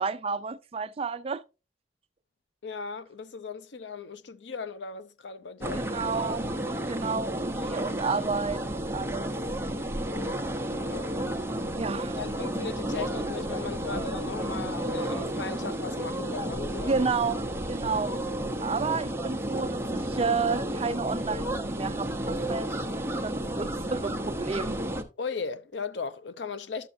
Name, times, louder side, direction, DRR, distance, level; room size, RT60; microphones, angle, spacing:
voice 1, 0.0-1.4 5.7-6.5 6.9-9.3 11.8-12.2 16.9-17.4 17.7-18.2 18.6-24.7, right 4 dB, 35° right, 0.4 m, -31 dB
voice 2, 2.6-5.9 10.7-11.2 12.2-17.0 25.2-26.9, left 5 dB, 85° left, 0.6 m, -37 dB
sound 1, 5.6-25.0, right 1 dB, 15° right, 0.8 m, -32 dB
11.0 x 7.0 x 2.6 m
head